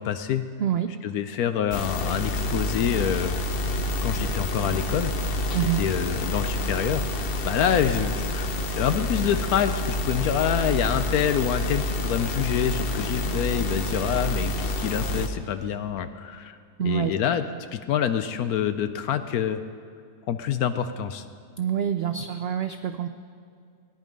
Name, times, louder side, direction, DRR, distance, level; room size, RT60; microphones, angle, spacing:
voice 1, 0.0-0.4 1.0-3.4 4.0-5.1 5.8-8.5 8.7-16.6 16.8-17.5 17.7-19.6 20.3-21.2, left 9 dB, 75° left, 10 dB, 1.1 m, -26 dB
voice 2, 0.6-1.0 5.5-5.8 16.8-17.1 21.6-23.1, right 9 dB, 85° right, 8 dB, 0.5 m, -26 dB
sound 1, 1.7-15.3, left 1 dB, 50° left, 0.8 m, -28 dB
18.0 x 10.5 x 5.3 m, 2.3 s
omnidirectional pair, 1.7 m